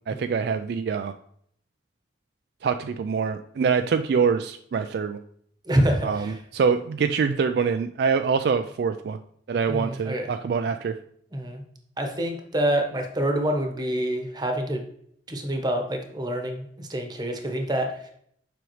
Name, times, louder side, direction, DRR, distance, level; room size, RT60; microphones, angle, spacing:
voice 1, 0.1-1.2 2.6-5.2 6.0-9.2 9.5-11.0, right 5 dB, 60° right, 8 dB, 0.3 m, -25 dB
voice 2, 5.7-6.3 9.7-10.3 11.3-11.6 12.0-14.8 15.3-18.0, right 1 dB, 20° right, 3 dB, 1.0 m, -26 dB
7.7 x 5.1 x 3.1 m, 0.66 s
head